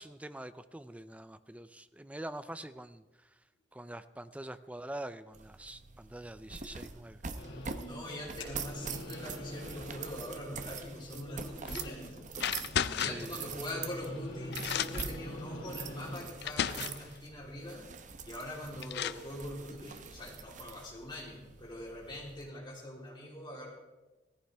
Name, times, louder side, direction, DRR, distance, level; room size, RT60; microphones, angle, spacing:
voice 1, 0.0-3.4 3.7-7.2 11.7-11.8 13.0-13.5, right 1 dB, 5° right, 12 dB, 0.5 m, -45 dB
sound 1, 5.3-22.5, right 5 dB, 45° right, 0.8 m, -45 dB
sound 2, 7.4-16.2, left 1 dB, 85° left, 3.0 m, -45 dB
voice 2, 7.8-12.0 13.0-17.9 18.2-23.7, left 1 dB, 25° left, -3 dB, 3.6 m, -43 dB
sound 3, 11.7-11.9 12.4-13.3 14.2-14.3 14.5-15.2 16.0-16.1 16.4-17.1 18.4-18.5 18.8-19.3, left 9 dB, 60° left, 0.4 m, -34 dB
17.0 x 14.5 x 3.4 m, 1.2 s
head